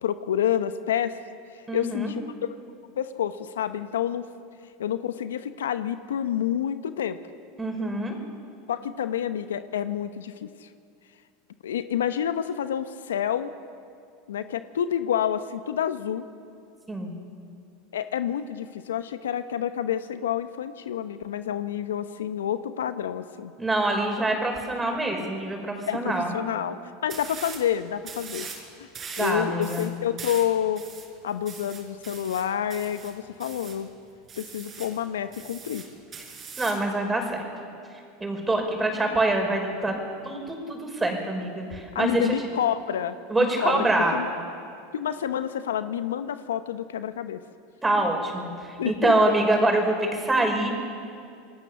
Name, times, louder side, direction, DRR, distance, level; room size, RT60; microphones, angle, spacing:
voice 1, 0.0-1.1 1.5-2.2 3.0-4.3 4.8-7.2 8.7-10.7 11.6-13.5 14.3-16.2 17.9-23.5 25.9-26.7 27.0-28.5 28.8-28.9 29.2-30.8 31.2-33.9 34.4-35.9 41.9-44.3 44.9-47.4 48.8-49.1, left 10 dB, 85° left, 11 dB, 0.9 m, -28 dB
voice 2, 1.7-2.1 7.6-8.2 16.9-17.1 23.6-26.3 29.2-29.9 36.6-37.4 38.2-40.0 40.2-42.3 43.3-44.2 47.8-50.7, right 2 dB, 15° right, 2 dB, 5.6 m, -25 dB
sound 1, 27.1-27.7 28.0-28.6 28.9-33.8 34.3-35.0 35.3-36.9, right 5 dB, 35° right, 5.3 m, -41 dB
27.5 x 19.0 x 7.1 m, 2.4 s
hypercardioid pair, 95°, 0 cm